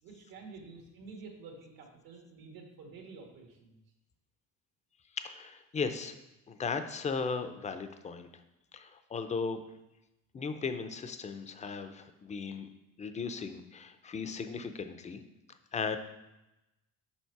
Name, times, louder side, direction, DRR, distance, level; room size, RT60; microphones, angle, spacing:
voice 1, 0.0-3.8, right 4 dB, 75° right, 1 dB, 1.8 m, -49 dB
voice 2, 5.2-6.2 6.5-8.3 8.7-9.6 10.3-12.7 13.0-15.2 15.7-16.0, left 5 dB, 20° left, 9 dB, 0.4 m, -36 dB
7.2 x 5.4 x 4.6 m, 0.96 s
cardioid pair, 150°, 35 cm